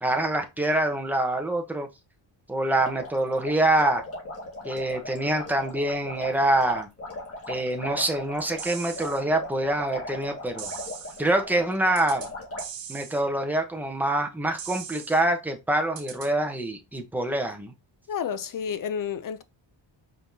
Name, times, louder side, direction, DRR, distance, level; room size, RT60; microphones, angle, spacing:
voice 1, 0.0-1.9 2.5-4.0 4.6-6.9 7.5-10.7 11.2-12.3 12.9-17.7, right 1 dB, 5° right, 0.8 m, -25 dB
sound 1, 2.8-12.7, left 1 dB, 30° left, 1.9 m, -38 dB
sound 2, 8.6-9.2 10.6-11.2 12.0-12.3 12.6-13.2 14.6-15.2 16.0-16.3, right 8 dB, 80° right, 1.1 m, -39 dB
voice 2, 18.1-19.4, left 7 dB, 45° left, 0.5 m, -30 dB
5.1 x 3.7 x 2.7 m
wide cardioid pair, 150°, 46 cm